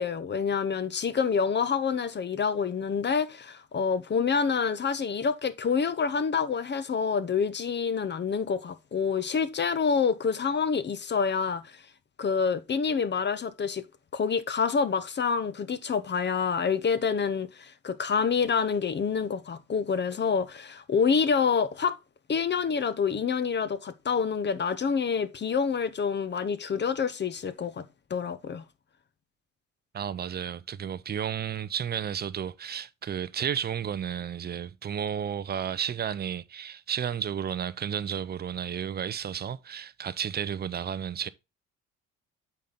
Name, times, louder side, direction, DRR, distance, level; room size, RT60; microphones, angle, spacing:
voice 1, 0.0-11.8 12.2-13.8 14.1-22.0 22.3-28.6, left 6 dB, 25° left, 0.7 m, -27 dB
voice 2, 29.9-41.3, right 8 dB, 25° right, 0.5 m, -32 dB
8.3 x 4.2 x 3.9 m
hypercardioid pair, 55°, 40 cm